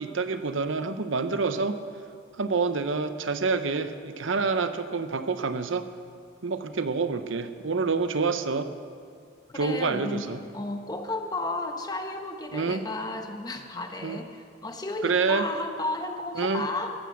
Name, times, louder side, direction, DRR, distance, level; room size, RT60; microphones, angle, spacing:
voice 1, 0.0-1.8 2.4-5.9 6.4-8.7 9.5-10.4 12.5-12.8 14.0-14.2 15.0-15.4 16.4-16.6, right 4 dB, 75° right, 10 dB, 0.8 m, -27 dB
voice 2, 9.5-10.2 10.5-16.9, left 2 dB, 20° left, 5 dB, 1.0 m, -33 dB
14.5 x 12.0 x 6.3 m, 2.2 s
head